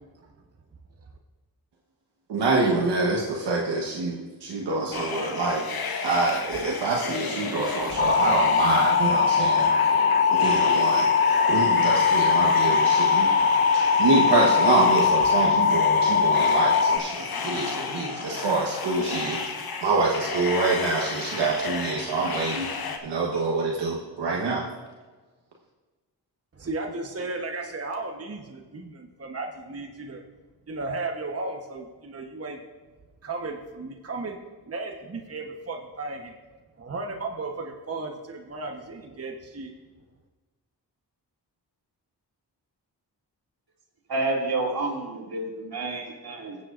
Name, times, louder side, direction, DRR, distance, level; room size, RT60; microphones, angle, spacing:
voice 1, 2.3-5.7 6.0-9.7 10.3-11.1 11.5-19.5 19.8-22.7 23.0-24.6, right 3 dB, 80° right, -2 dB, 1.3 m, -26 dB
sound 1, 4.9-23.0, left 5 dB, 60° left, 1.2 m, -33 dB
sound 2, 8.0-17.0, left 5 dB, 30° left, 0.6 m, -21 dB
voice 2, 26.5-30.2 30.7-32.6 33.2-34.4 34.7-36.4 36.8-39.7, right 3 dB, 35° right, 2 dB, 1.1 m, -35 dB
voice 3, 44.1-46.6, right 2 dB, 60° right, -1 dB, 2.6 m, -29 dB
16.0 x 7.6 x 2.6 m, 1.3 s
cardioid pair, 45°, 41 cm